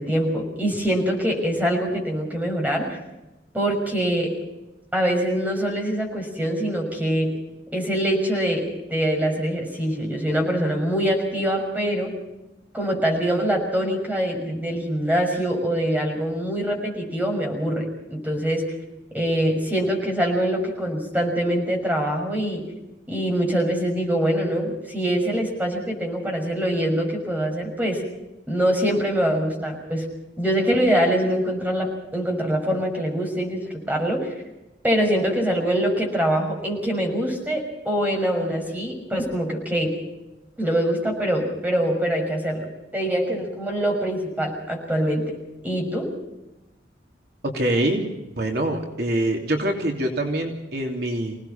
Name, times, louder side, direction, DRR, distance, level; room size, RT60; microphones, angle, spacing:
voice 1, 0.0-2.9 3.5-4.3 4.9-7.3 7.7-8.6 8.9-12.1 12.7-18.6 19.1-22.6 23.1-28.0 28.5-30.1 30.4-34.3 34.8-40.0 40.6-45.2 45.6-46.1, equal, 10° right, 1 dB, 6.2 m, -24 dB
voice 2, 47.5-48.1 48.4-51.4, right 1 dB, 60° right, 1 dB, 3.0 m, -24 dB
26.5 x 18.5 x 5.8 m, 0.98 s
head